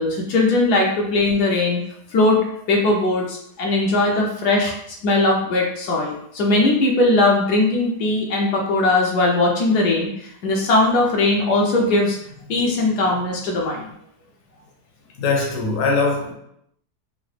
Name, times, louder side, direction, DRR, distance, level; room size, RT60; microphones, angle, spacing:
voice 1, 0.0-1.8 2.1-13.9, left 2 dB, 75° left, -1 dB, 1.1 m, -19 dB
voice 2, 15.2-16.3, left 3 dB, 60° left, 0 dB, 1.0 m, -21 dB
3.8 x 2.1 x 3.1 m, 0.73 s
omnidirectional pair, 1.7 m